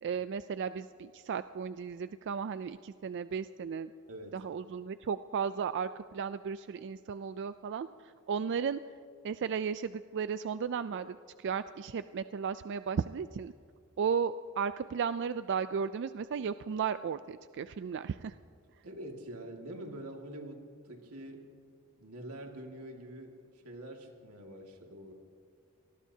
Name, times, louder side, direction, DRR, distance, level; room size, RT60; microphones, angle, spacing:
voice 1, 0.0-3.9 4.3-8.8 9.2-13.5 14.0-18.4, right 6 dB, 55° right, 13 dB, 0.3 m, -35 dB
voice 2, 18.8-21.5 22.0-23.4 23.6-25.1, right 1 dB, 90° right, 2 dB, 2.2 m, -45 dB
27.0 x 19.5 x 2.8 m, 2.2 s
head